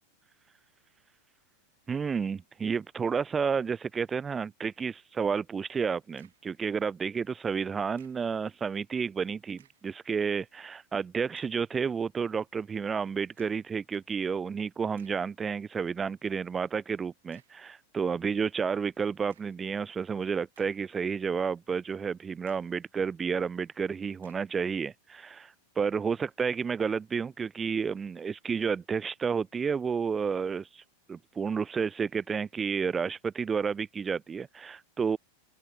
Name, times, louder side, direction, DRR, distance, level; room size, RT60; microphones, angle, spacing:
voice 1, 1.9-30.8 31.1-35.2, right 6 dB, 20° right, 0.5 m, -31 dB
sound 1, 6.0-6.6 8.0-8.4 9.5-10.0 10.6-10.7 11.3-11.7 13.4-13.8 14.4-14.5 15.0-15.3 17.3-17.7 19.3-19.7 20.3-21.1 21.5-21.6 22.5-22.8 24.2-24.6, right 11 dB, 60° right, 6.7 m, -64 dB
open air
figure-of-eight pair, 90°, 0 cm